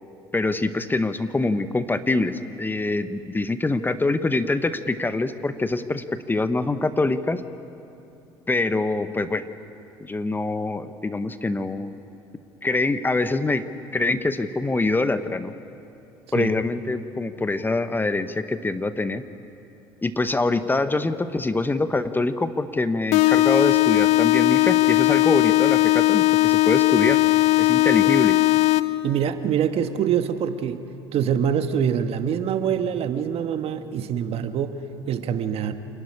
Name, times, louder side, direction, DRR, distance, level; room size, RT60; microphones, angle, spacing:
voice 1, 0.3-7.4 8.5-9.5 10.0-11.9 12.6-13.6 13.9-15.5 16.3-19.2 20.0-27.2 27.6-28.4, left 2 dB, 15° left, 11 dB, 0.9 m, -24 dB
sound 1, 23.1-29.1, left 18 dB, 65° left, 0.5 m, -18 dB
voice 2, 29.0-30.9 31.1-35.7, right 8 dB, 55° right, 9 dB, 1.3 m, -25 dB
27.5 x 11.5 x 9.8 m, 2.8 s
hypercardioid pair, 75°, 12 cm